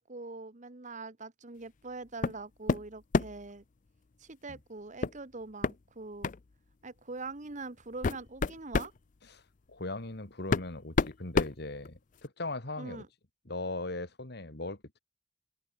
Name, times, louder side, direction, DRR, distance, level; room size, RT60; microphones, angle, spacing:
voice 1, 0.0-3.6 4.2-6.3 6.8-8.9 12.8-13.1, right 3 dB, 40° right, 1.3 m, -43 dB
sound 1, 2.2-2.4 2.7-3.5 5.0-5.2 5.6-5.8 6.2-6.4 7.3-7.4 7.8-9.0 10.0-10.1 10.5-12.3, left 4 dB, 45° left, 0.5 m, -29 dB
voice 2, 9.7-13.0 13.4-15.0, left 2 dB, 60° left, 2.6 m, -39 dB
head